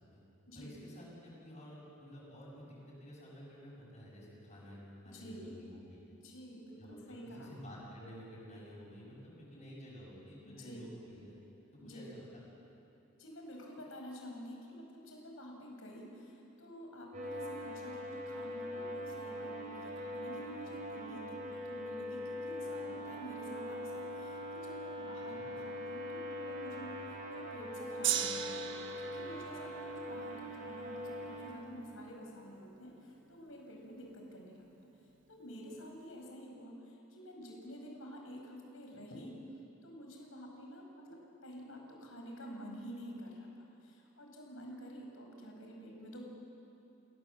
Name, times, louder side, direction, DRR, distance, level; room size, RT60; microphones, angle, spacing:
voice 1, 0.5-5.8 6.8-11.4 11.7-12.3 12.7-12.8 25.3-25.5, equal, 35° left, -6 dB, 7.3 m, -51 dB
voice 2, 5.0-5.6 6.1-7.5 10.4-10.9 11.8-12.1 13.2-34.7 35.3-39.4 39.8-46.2, equal, 85° left, 1 dB, 5.6 m, -49 dB
sound 1, 17.1-31.5, left 1 dB, 40° right, 3.9 m, -42 dB
Gong, 28.0-34.4 35.2-35.3, right 9 dB, 65° right, 1.2 m, -41 dB
29.5 x 18.0 x 7.6 m, 2.8 s
head